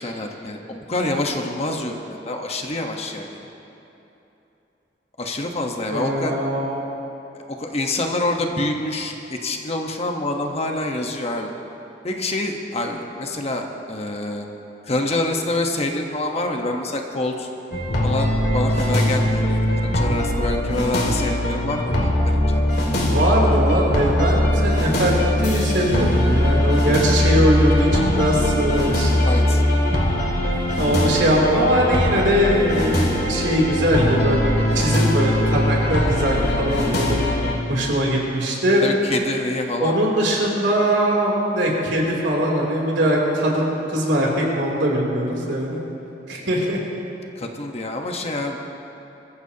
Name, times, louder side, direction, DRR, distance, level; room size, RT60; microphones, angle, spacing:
voice 1, 0.0-3.4 5.2-6.3 7.6-11.5 12.0-14.5 14.9-17.5 18.0-22.6 29.2-29.6 36.3-36.6 38.8-39.9 47.4-48.6, left 2 dB, 35° left, 2 dB, 1.2 m, -26 dB
voice 2, 5.9-6.8 23.0-29.2 30.8-34.4 34.7-37.2 37.7-38.9 39.8-45.8 46.3-46.8, equal, 80° right, -3 dB, 3.1 m, -21 dB
sound 1, 17.7-37.5, left 1 dB, 65° left, 2.3 m, -21 dB
22.5 x 15.0 x 2.9 m, 3.0 s
head